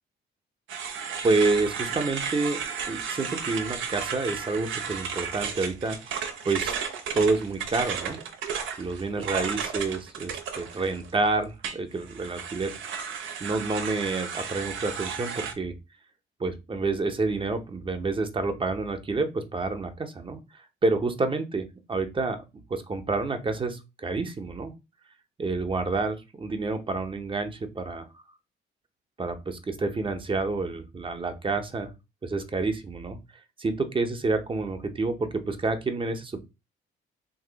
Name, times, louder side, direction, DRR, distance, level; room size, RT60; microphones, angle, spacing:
sound 1, 0.7-11.2 11.6-15.5, right 6 dB, 85° right, 0.6 m, -34 dB
voice 1, 1.2-2.6 2.9-6.0 6.4-6.7 7.1-8.2 8.8-12.7 13.4-15.7 16.4-20.4 20.8-22.4 22.7-24.7 25.4-28.1 29.2-31.9 32.2-33.2 33.6-36.4, right 3 dB, 25° right, 8 dB, 0.6 m, -28 dB
2.9 x 2.6 x 3.9 m, 0.26 s
cardioid pair, 90°, 20 cm